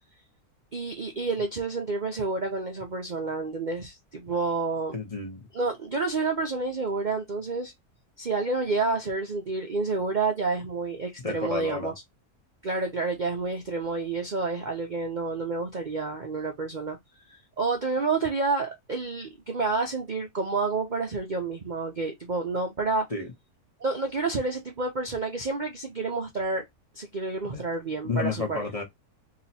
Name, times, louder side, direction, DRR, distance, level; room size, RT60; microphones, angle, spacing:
voice 1, 0.7-4.9 5.5-7.7 8.2-11.9 12.6-17.0 17.3-23.1 23.8-26.6 26.9-28.7, right 3 dB, 45° right, 0.6 m, -29 dB
voice 2, 4.9-5.5 11.2-11.9 23.1-23.3 27.4-27.6 28.0-28.8, left 4 dB, 30° left, 0.8 m, -31 dB
3.0 x 2.9 x 4.2 m
omnidirectional pair, 1.6 m